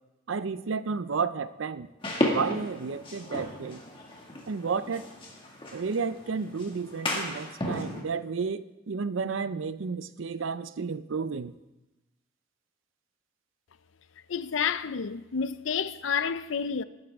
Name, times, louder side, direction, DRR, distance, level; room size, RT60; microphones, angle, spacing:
voice 1, 0.3-1.9 2.3-3.8 4.5-5.1 5.7-11.5, right 5 dB, 80° right, 0.5 m, -32 dB
sound 1, 2.0-8.0, left 1 dB, 25° left, 2.0 m, -34 dB
voice 2, 14.3-16.8, left 6 dB, 80° left, 0.5 m, -29 dB
19.0 x 9.9 x 3.6 m
head